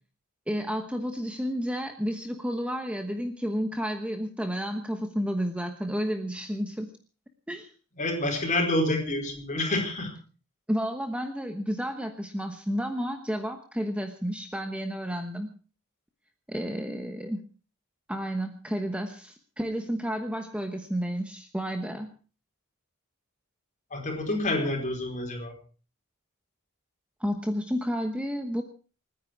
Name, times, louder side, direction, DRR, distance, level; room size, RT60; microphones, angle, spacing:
voice 1, 0.5-6.9 7.5-7.7 10.7-15.5 16.5-17.4 18.1-22.1 27.2-28.6, equal, 5° right, 6 dB, 1.1 m, -31 dB
voice 2, 8.0-10.1 23.9-25.5, left 1 dB, 35° left, 3 dB, 5.0 m, -28 dB
28.5 x 10.0 x 4.7 m, 0.38 s
head